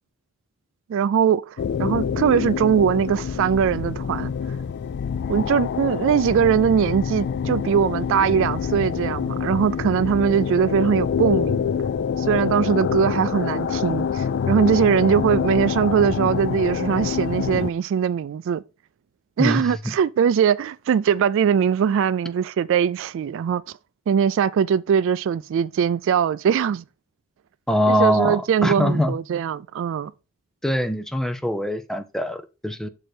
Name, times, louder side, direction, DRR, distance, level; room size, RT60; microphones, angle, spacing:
voice 1, 0.9-4.3 5.3-11.7 12.2-18.6 19.4-23.6 24.1-26.8 27.9-30.1, right 7 dB, 65° right, 0.3 m, -21 dB
sound 1, 1.6-17.7, left 7 dB, 55° left, 0.3 m, -26 dB
voice 2, 19.4-19.9 27.7-29.1 30.6-32.9, left 1 dB, ahead, 0.6 m, -23 dB
6.4 x 4.9 x 4.4 m
head